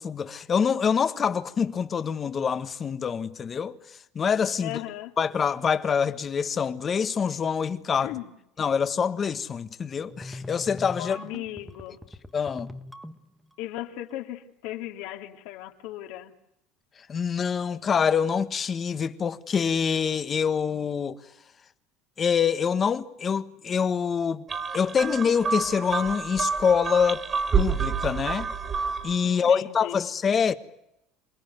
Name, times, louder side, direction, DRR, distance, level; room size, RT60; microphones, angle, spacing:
voice 1, 0.0-3.8 4.1-4.8 5.2-8.1 8.6-11.2 12.3-12.7 17.1-21.2 22.2-24.4 24.7-27.2 27.6-28.5 29.0-30.5, left 6 dB, 25° left, 1.5 m, -25 dB
voice 2, 4.6-5.1 8.0-8.3 11.0-12.0 13.6-16.3 29.2-30.0, left 14 dB, 70° left, 2.8 m, -37 dB
sound 1, 10.1-13.5, left 1 dB, ahead, 1.3 m, -41 dB
sound 2, 24.5-29.2, right 5 dB, 25° right, 1.1 m, -28 dB
28.0 x 19.0 x 9.4 m
cardioid pair, 145°, 0 cm